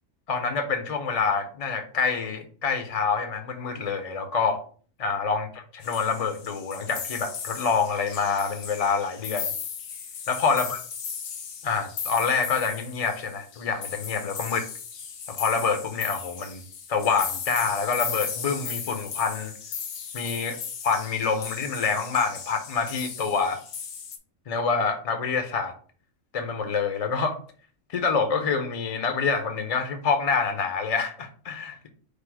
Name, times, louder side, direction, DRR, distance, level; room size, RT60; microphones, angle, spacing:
voice 1, 0.3-4.6 5.0-9.5 10.3-10.8 11.6-14.7 15.3-16.6 16.9-19.5 20.1-20.6 20.8-23.6 24.5-25.7 26.3-27.4 27.9-31.9, left 5 dB, 50° left, 7 dB, 0.4 m, -26 dB
sound 1, 5.8-24.2, left 7 dB, 85° left, 1.1 m, -37 dB
5.0 x 2.0 x 4.6 m, 0.43 s
omnidirectional pair, 1.4 m